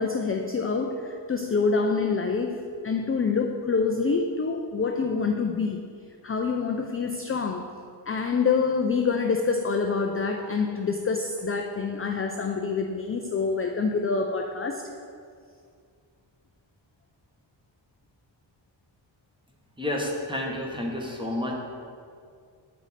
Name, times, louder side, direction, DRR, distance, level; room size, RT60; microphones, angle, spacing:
voice 1, 0.0-5.8 6.2-7.7 8.1-14.9, left 4 dB, 30° left, 4 dB, 0.4 m, -26 dB
voice 2, 19.8-21.6, left 1 dB, 10° right, -1 dB, 1.1 m, -30 dB
8.6 x 5.0 x 4.1 m, 2.3 s
wide cardioid pair, 105°, 46 cm